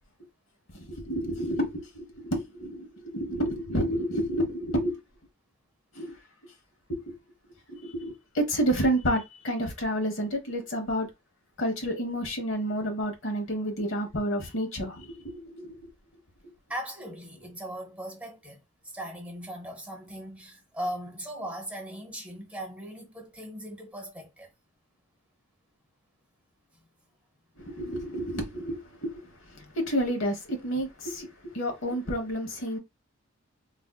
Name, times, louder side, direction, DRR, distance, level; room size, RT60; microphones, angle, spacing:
voice 1, 0.7-5.0 5.9-6.2 6.4-6.5 6.9-7.1 7.7-11.1 11.6-15.9 16.4-16.5 27.6-32.8, equal, 70° left, 0.9 m, -30 dB
voice 2, 16.7-24.5 29.6-29.7, equal, 5° right, 0.8 m, -39 dB
3.5 x 2.6 x 2.2 m
head